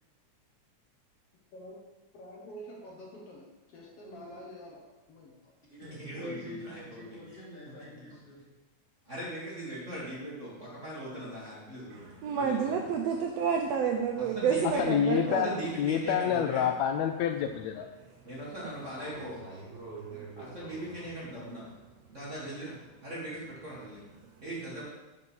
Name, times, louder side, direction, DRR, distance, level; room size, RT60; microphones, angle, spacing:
voice 1, 1.5-1.8 2.1-4.8 5.1-5.5, equal, 60° left, -1 dB, 1.8 m, -47 dB
voice 2, 4.0-4.3 5.7-8.4 9.0-9.3, left 1 dB, 20° left, -8 dB, 3.0 m, -45 dB
voice 3, 6.0-7.4 9.1-12.7 14.3-14.8 15.4-16.7 18.2-19.4 20.4-21.7 22.1-22.8 23.0-24.0 24.4-24.8, right 1 dB, 30° right, -7 dB, 1.6 m, -40 dB
voice 4, 11.9-15.7 17.5-17.6 18.0-18.3 21.3-21.4 21.8-22.2 23.0-23.1 24.2-24.4, right 6 dB, 75° right, 2 dB, 1.6 m, -31 dB
voice 5, 14.9-15.5 15.8-17.9, left 9 dB, 80° left, 6 dB, 1.7 m, -27 dB
voice 6, 18.8-21.1, right 3 dB, 60° right, -6 dB, 3.8 m, -45 dB
7.0 x 5.7 x 6.1 m, 1.1 s
omnidirectional pair, 3.3 m